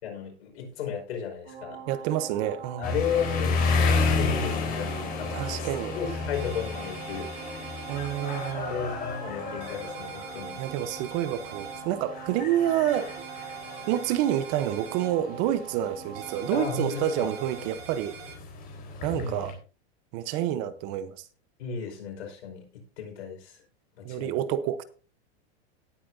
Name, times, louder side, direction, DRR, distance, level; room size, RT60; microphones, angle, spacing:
voice 1, 0.0-1.8 2.8-5.7 5.9-7.8 8.7-10.6 16.5-17.3 19.1-19.4 21.6-23.6 24.0-24.4, left 6 dB, 90° left, 5.0 m, -34 dB
sound 1, 1.4-17.6, right 6 dB, 85° right, 5.1 m, -43 dB
voice 2, 1.9-3.0 5.3-5.9 7.9-8.8 10.6-13.1 13.9-18.2 19.0-19.5 20.1-21.3 24.0-24.8, right 11 dB, 40° right, 0.9 m, -28 dB
Roosters Ubud, 2.8-19.5, left 4 dB, 25° left, 3.9 m, -32 dB
sound 2, 6.3-8.5 9.6-11.8 12.9-15.1 16.1-18.4, right 7 dB, 60° right, 3.9 m, -45 dB
18.0 x 8.4 x 2.7 m
supercardioid pair, 155°, 32 cm